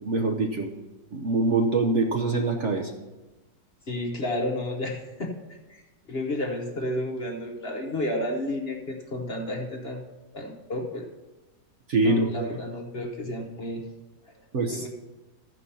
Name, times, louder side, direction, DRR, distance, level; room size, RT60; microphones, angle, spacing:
voice 1, 0.0-0.7 1.1-2.9 11.9-12.5 14.5-14.9, right 2 dB, 55° right, 3 dB, 0.9 m, -24 dB
voice 2, 3.9-5.4 5.7-5.8 6.1-10.0 10.3-11.1 12.0-13.8 14.3-14.4 14.7-14.9, left 1 dB, 40° left, 1 dB, 1.1 m, -31 dB
14.5 x 5.3 x 5.5 m, 1.1 s
omnidirectional pair, 1.9 m